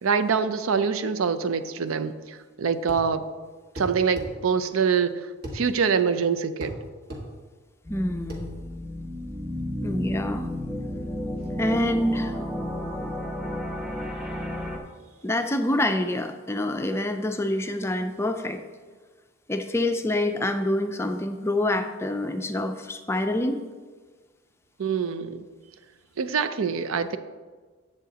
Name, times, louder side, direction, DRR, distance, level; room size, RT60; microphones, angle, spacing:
voice 1, 0.0-3.2 3.8-5.2 5.5-6.7 24.8-25.4 26.2-27.2, right 6 dB, 85° right, 12 dB, 0.5 m, -25 dB
sound 1, 2.9-3.1 3.8-4.3 5.4-5.6 6.6-6.8 7.1-7.3 8.3-8.5, equal, 45° right, 1.5 m, -35 dB
voice 2, 7.9-8.5 9.8-10.5 11.6-12.4 15.2-18.6 19.5-23.6, left 1 dB, 10° left, 6 dB, 0.4 m, -26 dB
sound 2, 7.9-14.8, left 1 dB, 5° right, 0.9 m, -32 dB
11.0 x 8.0 x 2.8 m, 1.4 s
head